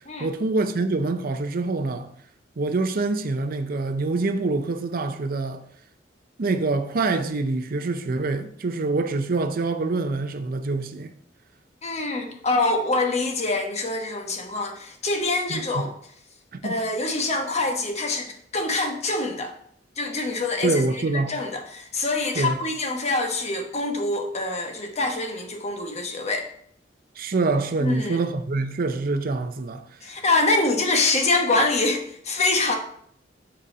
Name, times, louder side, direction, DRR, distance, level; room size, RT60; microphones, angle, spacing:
voice 1, 0.2-2.1 2.6-5.6 6.4-11.1 15.5-15.9 16.6-16.8 20.6-21.3 22.4-22.6 27.2-29.9, right 3 dB, 50° right, 0.5 m, -25 dB
voice 2, 11.8-15.9 16.6-19.5 20.0-26.5 27.8-28.2 30.0-32.7, left 2 dB, 35° left, 1.1 m, -25 dB
7.7 x 4.1 x 5.0 m
head